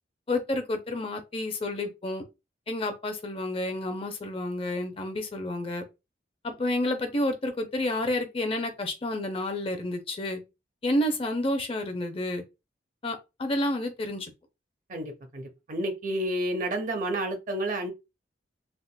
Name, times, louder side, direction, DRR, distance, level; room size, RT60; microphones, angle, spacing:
voice 1, 0.3-2.2 2.7-5.8 6.4-10.4 10.8-12.4 13.0-14.3, left 1 dB, 30° left, 0.5 m, -30 dB
voice 2, 14.9-17.9, right 1 dB, 45° right, 0.6 m, -30 dB
3.5 x 2.4 x 2.2 m
head